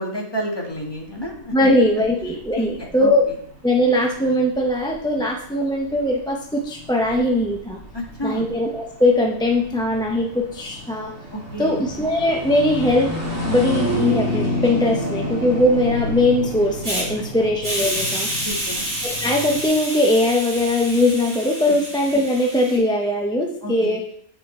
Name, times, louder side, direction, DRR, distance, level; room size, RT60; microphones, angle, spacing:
voice 1, 0.0-1.7 2.6-3.1 7.9-8.5 11.3-11.8 17.1-17.5 18.4-18.9 23.6-23.7, equal, 20° left, -1 dB, 1.5 m, -30 dB
sound 1, 0.7-19.6, left 1 dB, 15° right, 2.2 m, -30 dB
voice 2, 1.5-3.3 3.6-7.8 8.2-11.1 11.6-13.1 13.5-18.3 19.0-24.0, left 1 dB, 5° left, 0 dB, 0.6 m, -20 dB
Hiss, 16.8-17.0 17.6-22.8, equal, 30° right, 3.1 m, -28 dB
9.5 x 5.5 x 4.2 m, 0.67 s
omnidirectional pair, 1.2 m